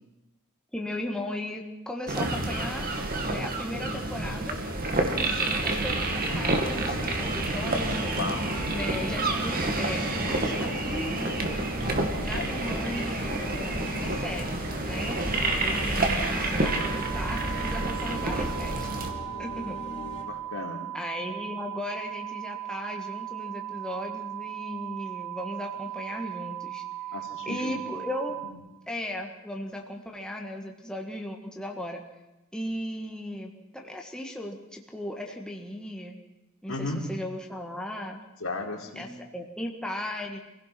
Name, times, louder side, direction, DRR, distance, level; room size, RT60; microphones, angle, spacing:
voice 1, 0.7-2.9 3.2-4.6 5.1-8.0 8.7-11.3 12.2-15.3 15.6-18.9 19.4-19.8 20.9-26.8 27.4-28.4 28.9-32.0 32.5-36.2 36.6-38.2 38.9-40.4, left 1 dB, 5° left, 1 dB, 1.8 m, -37 dB
sound 1, 2.1-19.1, right 2 dB, 40° right, 2.3 m, -29 dB
sound 2, 5.7-20.2, left 2 dB, 30° left, 3.8 m, -40 dB
sound 3, 16.6-28.5, right 14 dB, 70° right, 2.3 m, -37 dB
voice 2, 20.2-20.9 27.1-27.8 36.7-37.0 38.4-39.1, left 3 dB, 70° left, 1 dB, 3.7 m, -35 dB
26.5 x 16.5 x 6.1 m, 1.0 s
head